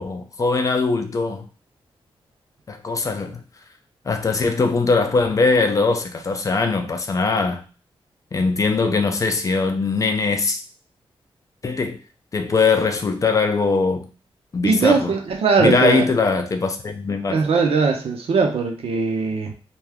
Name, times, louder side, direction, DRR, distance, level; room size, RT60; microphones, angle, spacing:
voice 1, 0.0-1.5 2.7-3.4 4.1-7.6 8.3-10.6 11.6-12.0 12.3-14.1 14.5-15.2 15.6-17.4, left 4 dB, 35° left, 0.4 m, -21 dB
voice 2, 14.6-16.0 17.3-19.5, right 5 dB, 80° right, 0.7 m, -20 dB
2.8 x 2.3 x 3.5 m
wide cardioid pair, 175°, 10 cm